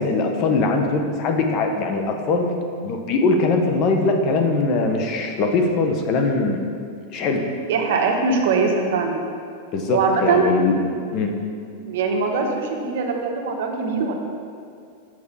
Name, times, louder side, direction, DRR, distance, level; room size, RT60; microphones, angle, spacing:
voice 1, 0.0-2.5 2.8-6.6 7.1-7.5 9.7-10.8 11.1-11.3, left 3 dB, 40° left, 4 dB, 1.0 m, -21 dB
voice 2, 7.7-9.2 9.9-10.5 11.8-14.1, right 4 dB, 70° right, 2 dB, 1.2 m, -22 dB
7.5 x 6.1 x 5.6 m, 2.3 s
supercardioid pair, 135°, 0 cm